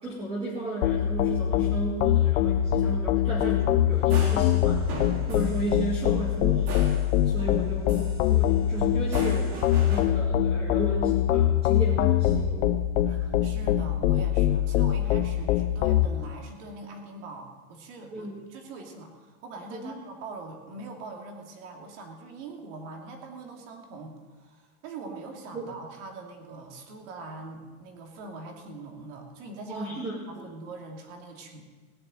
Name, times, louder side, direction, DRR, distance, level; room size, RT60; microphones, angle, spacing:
voice 1, 0.0-4.8 5.3-6.8 7.2-12.6 18.1-18.3 19.7-19.9 25.5-25.6 29.7-30.5, right 1 dB, 15° right, -5 dB, 2.1 m, -34 dB
sound 1, 0.8-16.1, left 11 dB, 65° left, 0.9 m, -23 dB
sound 2, 3.9-7.6 7.9-10.0, right 1 dB, 80° right, 4.8 m, -39 dB
voice 2, 13.0-30.0 30.3-31.6, right 3 dB, 55° right, 2 dB, 2.7 m, -42 dB
17.0 x 7.0 x 9.0 m, 1.4 s
supercardioid pair, 165°, 43 cm